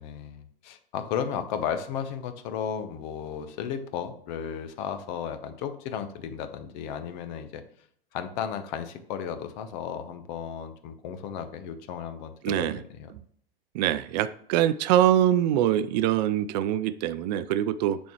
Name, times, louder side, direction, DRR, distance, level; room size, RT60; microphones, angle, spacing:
voice 1, 0.0-7.6 8.1-13.1, left 8 dB, 50° left, 10 dB, 1.0 m, -34 dB
voice 2, 12.4-12.8 13.7-18.0, right 12 dB, 50° right, 14 dB, 0.5 m, -24 dB
10.5 x 4.3 x 3.1 m, 0.65 s
figure-of-eight pair, 90°, 29 cm